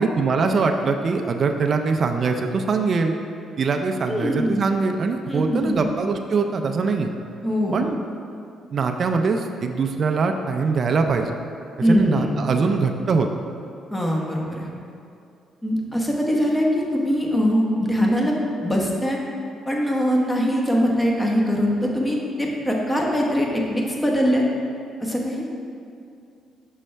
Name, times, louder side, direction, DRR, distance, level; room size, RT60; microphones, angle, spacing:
voice 1, 0.0-3.1 3.6-7.1 7.7-8.0 8.7-11.3 11.9-13.3, right 4 dB, 50° right, 4 dB, 0.4 m, -22 dB
voice 2, 4.1-4.6 5.3-5.9 7.4-7.8 11.8-12.3 13.9-14.7 15.6-19.2 19.7-24.4 25.0-25.5, equal, 10° left, -1 dB, 1.1 m, -22 dB
6.2 x 5.5 x 3.3 m, 2.4 s
cardioid pair, 90°, 0 cm